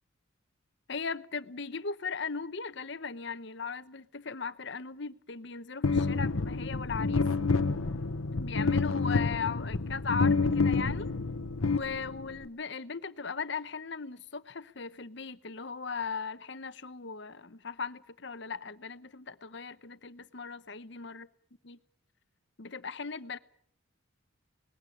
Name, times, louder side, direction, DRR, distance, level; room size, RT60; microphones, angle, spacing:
voice 1, 0.9-7.3 8.3-11.1 11.7-21.3 21.7-21.8 22.6-23.4, left 5 dB, 55° left, 0.9 m, -38 dB
sound 1, 5.8-12.4, left 4 dB, 80° left, 0.9 m, -28 dB
20.0 x 15.5 x 9.8 m
head